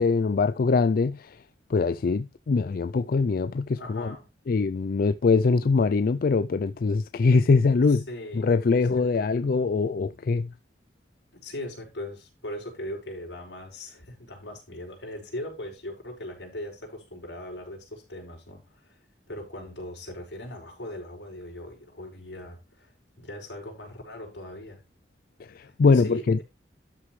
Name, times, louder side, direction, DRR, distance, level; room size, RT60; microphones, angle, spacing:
voice 1, 0.0-1.4 1.7-4.1 4.5-8.1 8.3-10.5 25.4-26.4, left 4 dB, 55° left, 0.4 m, -23 dB
voice 2, 3.8-4.3 7.9-8.5 8.8-9.3 11.3-19.0 19.3-22.9 23.2-24.8 25.6-26.4, left 1 dB, 85° left, 5.3 m, -39 dB
12.5 x 6.6 x 3.2 m
head